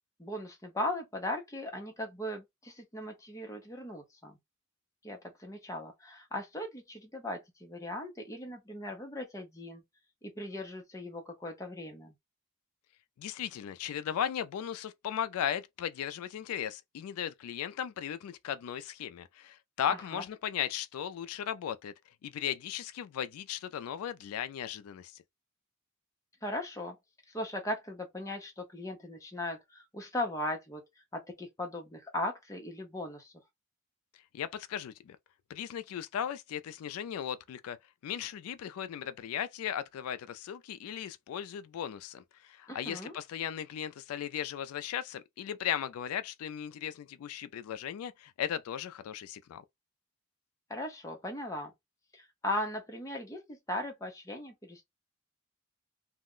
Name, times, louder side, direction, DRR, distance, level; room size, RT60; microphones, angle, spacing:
voice 1, 0.2-4.4 5.0-9.8 10.2-12.1 20.1-20.2 26.4-27.0 27.3-30.8 31.1-33.3 42.7-43.2 50.7-51.7 52.1-54.9, left 1 dB, 15° left, 0.7 m, -38 dB
voice 2, 13.2-21.9 22.2-25.2 34.3-35.2 35.5-37.8 38.0-49.6, left 9 dB, 85° left, 0.3 m, -37 dB
2.4 x 2.1 x 3.6 m
head